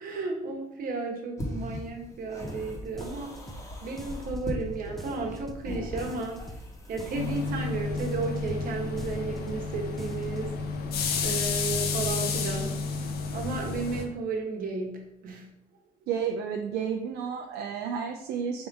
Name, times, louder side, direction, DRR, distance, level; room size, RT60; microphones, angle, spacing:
voice 1, 0.0-3.4 3.8-6.4 6.9-10.9 11.1-12.8 13.3-15.5, right 3 dB, 55° right, 2 dB, 1.0 m, -33 dB
sound 1, 1.4-8.6, equal, 20° left, 1.0 m, -39 dB
sound 2, 2.5-2.7 3.0-3.7 4.0-4.7 5.0-5.7 6.0-6.7 7.0-7.7 8.0-8.7 9.0-9.7 10.0-10.4, equal, ahead, 0.5 m, -44 dB
sound 3, 7.1-14.0, left 4 dB, 65° left, 0.6 m, -31 dB
voice 2, 16.1-18.7, right 7 dB, 75° right, 2 dB, 0.4 m, -31 dB
3.5 x 2.7 x 4.5 m, 0.80 s
cardioid pair, 110°, 17 cm